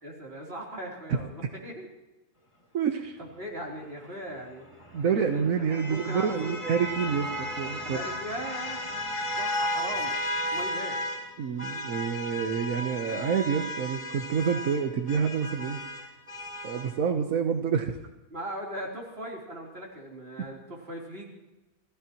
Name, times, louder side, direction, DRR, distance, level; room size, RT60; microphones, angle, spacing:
voice 1, 0.0-1.9 2.9-4.6 5.0-6.6 7.8-10.1 10.5-11.0 18.3-21.3, right 1 dB, 45° right, -3 dB, 3.9 m, -39 dB
voice 2, 2.7-3.2 4.9-8.0 11.4-15.8 16.6-18.0, right 7 dB, 90° right, 5 dB, 1.5 m, -28 dB
sound 1, 4.6-11.3 11.6-16.9, left 1 dB, 20° left, 2.6 m, -34 dB
28.0 x 16.0 x 3.1 m, 1.0 s
omnidirectional pair, 1.4 m